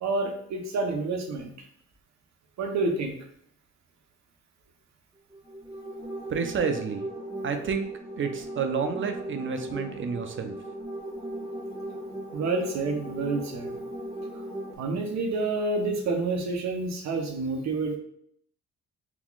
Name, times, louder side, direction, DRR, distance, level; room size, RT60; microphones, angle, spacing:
voice 1, 0.0-1.5 2.6-3.1 12.3-13.8 14.8-18.0, right 3 dB, 65° right, 3 dB, 0.8 m, -28 dB
sound 1, 5.3-14.7, right 1 dB, 10° right, 1.4 m, -38 dB
voice 2, 6.3-7.1 7.4-7.9 8.2-10.5, right 5 dB, 40° right, 6 dB, 0.5 m, -29 dB
3.9 x 2.9 x 2.4 m, 0.68 s
cardioid pair, 90°, 30 cm